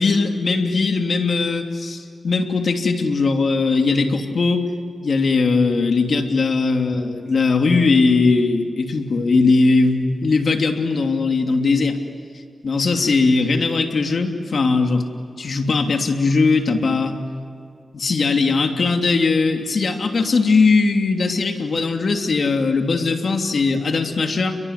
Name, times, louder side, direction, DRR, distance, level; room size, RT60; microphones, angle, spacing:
voice 1, 0.0-4.7 5.0-12.0 12.6-15.0 15.4-17.2 17.9-24.6, left 4 dB, 60° left, 4 dB, 3.0 m, -19 dB
30.0 x 22.5 x 8.4 m, 2.4 s
cardioid pair, 65°, 0 cm